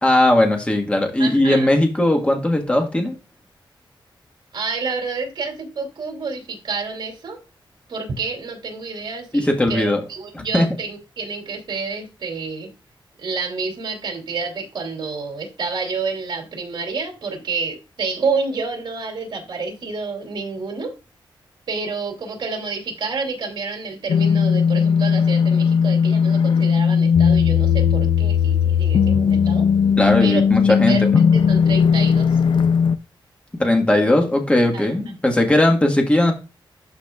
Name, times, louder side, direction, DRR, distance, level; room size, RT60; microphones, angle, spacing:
voice 1, 0.0-3.2 9.3-10.0 10.3-10.7 30.0-31.2 33.6-36.3, left 1 dB, 15° left, 3 dB, 1.5 m, -18 dB
voice 2, 1.2-1.7 4.5-7.4 7.9-12.7 13.2-20.9 21.7-29.7 30.2-30.4 30.9-32.4 34.7-34.9, right 4 dB, 60° right, 2 dB, 3.0 m, -29 dB
sound 1, 24.1-33.0, left 6 dB, 70° left, 0.5 m, -17 dB
12.0 x 5.0 x 2.4 m, 0.30 s
wide cardioid pair, 135°, 9 cm